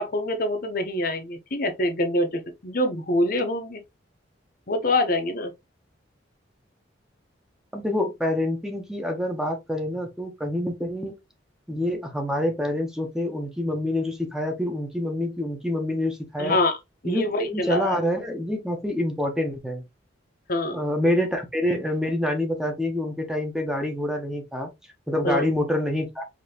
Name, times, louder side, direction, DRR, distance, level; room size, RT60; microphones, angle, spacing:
voice 1, 0.0-3.8 4.7-5.5 16.4-16.8 17.0-18.0 20.5-20.8 25.2-25.4, left 1 dB, 50° left, 0.8 m, -25 dB
voice 2, 7.7-11.1 11.7-16.6 17.0-19.8 20.7-24.7 25.1-26.2, left 1 dB, 5° right, 0.8 m, -27 dB
5.1 x 2.8 x 2.8 m
head